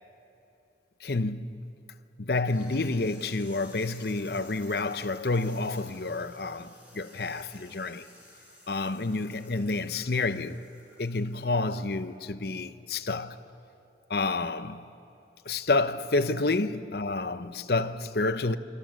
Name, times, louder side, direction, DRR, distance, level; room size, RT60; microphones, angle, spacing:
voice 1, 1.0-1.5 2.2-8.0 8.7-10.6 11.0-13.4 14.1-14.8 15.5-18.6, left 3 dB, 55° left, 0.8 m, -29 dB
sound 1, 2.5-12.3, left 1 dB, 10° right, 4.9 m, -55 dB
28.5 x 26.0 x 7.6 m
head